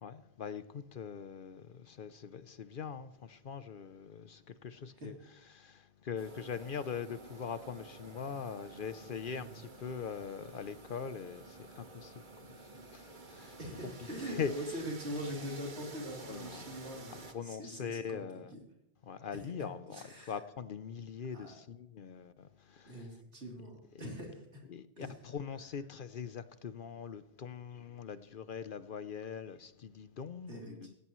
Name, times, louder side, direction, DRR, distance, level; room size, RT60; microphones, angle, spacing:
voice 1, 0.0-5.1 5.5-13.6 14.2-14.5 16.2-16.7 17.3-18.5 19.0-23.1 23.9-24.1 24.7-30.9, left 6 dB, 55° left, 0.8 m, -42 dB
sound 1, 6.2-17.3, right 3 dB, 45° right, 1.4 m, -51 dB
voice 2, 13.6-17.2 17.4-18.3 18.5-18.6 19.3-19.4 19.9-20.3 21.3-21.5 22.9-24.6 25.0-25.1 30.5-30.9, equal, 80° right, 3.6 m, -43 dB
17.0 x 16.5 x 3.1 m
omnidirectional pair, 1.1 m